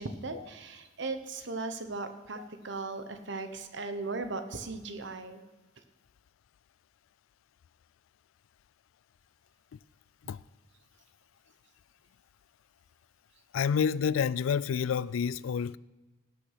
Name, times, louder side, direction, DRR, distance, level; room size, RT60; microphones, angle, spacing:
voice 1, 0.0-5.4, right 3 dB, 60° right, 1.1 m, -37 dB
voice 2, 13.5-15.8, left 7 dB, 90° left, 0.3 m, -29 dB
18.0 x 6.3 x 5.8 m
head